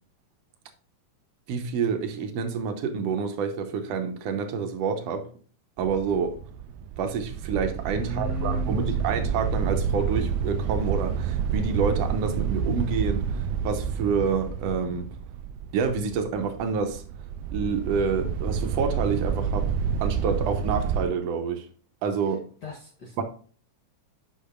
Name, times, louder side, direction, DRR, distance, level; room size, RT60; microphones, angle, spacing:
voice 1, 1.5-5.3 5.8-6.4 7.0-15.1 15.7-17.0 17.5-19.7 20.0-21.7 22.0-22.5 23.2-23.3, right 5 dB, 65° right, 1.8 m, -28 dB
sound 1, 5.8-21.1, right 7 dB, 80° right, 1.8 m, -29 dB
voice 2, 8.0-9.2 22.2-22.3 22.6-23.2, equal, 75° left, 0.9 m, -35 dB
8.4 x 6.3 x 2.5 m
omnidirectional pair, 3.7 m